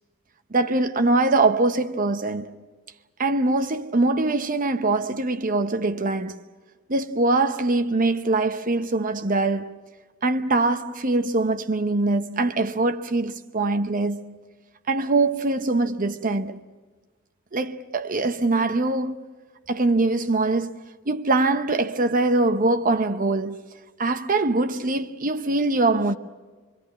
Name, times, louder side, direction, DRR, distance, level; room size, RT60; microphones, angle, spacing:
voice 1, 0.5-2.5 3.2-6.4 6.9-9.8 10.2-14.4 14.9-16.6 17.5-19.3 19.7-20.8 21.1-23.6 24.0-26.1, right 2 dB, 40° right, 0.9 m, -23 dB
25.0 x 24.5 x 7.4 m
head